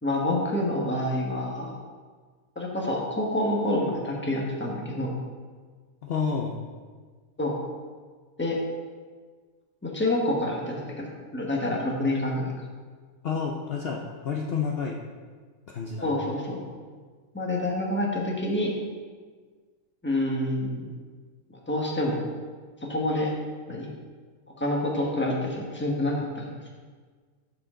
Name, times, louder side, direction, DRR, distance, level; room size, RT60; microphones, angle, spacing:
voice 1, 0.0-1.7 2.5-5.1 7.4-7.5 8.4-8.6 9.8-12.5 16.0-16.7 17.3-18.7 20.0-20.8 21.7-22.2 22.8-23.3 23.7-23.9 24.6-26.6, left 1 dB, 10° left, -2 dB, 1.2 m, -27 dB
voice 2, 6.0-6.5 13.2-15.0 15.7-16.1, left 5 dB, 55° left, 0 dB, 0.7 m, -29 dB
13.5 x 4.8 x 3.7 m, 1.5 s
omnidirectional pair, 1.5 m